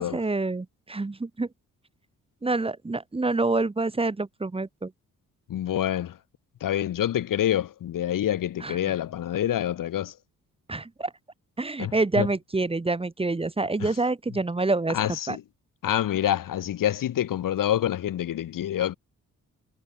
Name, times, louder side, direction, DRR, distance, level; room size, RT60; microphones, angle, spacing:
voice 1, 0.0-1.5 2.4-4.9 8.6-8.9 10.7-11.1 11.6-15.0 15.3-15.4, right 3 dB, 15° right, 1.8 m, -27 dB
voice 2, 5.5-6.2 6.6-10.1 11.8-12.3 13.8-13.9 14.9-15.4 15.8-18.9, left 11 dB, 90° left, 2.8 m, -27 dB
wide cardioid pair, 135°, 32 cm